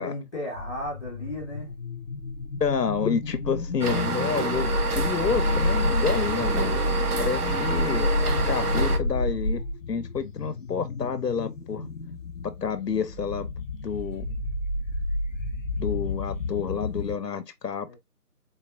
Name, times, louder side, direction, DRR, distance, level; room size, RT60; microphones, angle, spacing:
voice 1, 0.0-1.7 17.8-18.0, left 1 dB, 10° left, 1.1 m, -34 dB
sound 1, 0.6-17.2, left 2 dB, 55° left, 0.5 m, -30 dB
voice 2, 2.6-6.7 7.2-9.6 9.9-11.8 12.4-13.5 13.8-14.3 15.7-18.0, left 6 dB, 90° left, 0.9 m, -29 dB
The Crossley Gas Engine, 3.8-9.0, right 2 dB, 70° right, 1.0 m, -28 dB
4.0 x 3.2 x 2.5 m
figure-of-eight pair, 170°, 47 cm